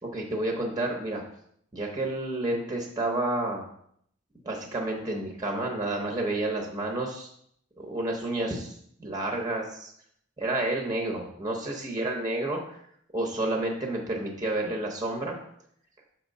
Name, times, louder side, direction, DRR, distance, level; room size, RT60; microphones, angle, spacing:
voice 1, 0.1-1.2 1.7-3.7 4.4-7.3 7.8-9.9 10.4-12.8 13.1-15.4, right 2 dB, 20° right, 1 dB, 0.7 m, -30 dB
5.9 x 3.6 x 5.2 m, 0.68 s
head